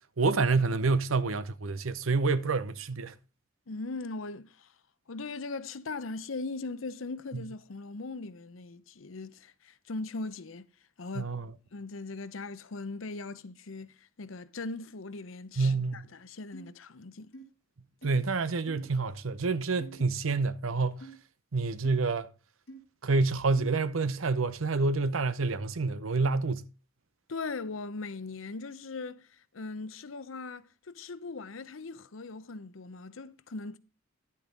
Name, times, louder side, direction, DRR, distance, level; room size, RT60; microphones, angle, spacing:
voice 1, 0.2-3.1 7.3-7.4 11.2-11.5 15.6-16.1 18.0-21.1 21.5-22.3 23.0-26.7, right 3 dB, 85° right, 0.8 m, -28 dB
voice 2, 3.7-4.7 5.1-10.7 11.0-11.3 11.7-17.3 27.3-33.8, left 3 dB, 75° left, 0.8 m, -39 dB
sound 1, 16.5-16.7 17.3-17.4 18.0-18.1 18.7-18.9 19.8-20.0 21.0-21.2 21.8-22.0 22.7-22.8 23.6-23.7, right 2 dB, 55° left, 2.1 m, -47 dB
11.0 x 8.4 x 3.8 m
head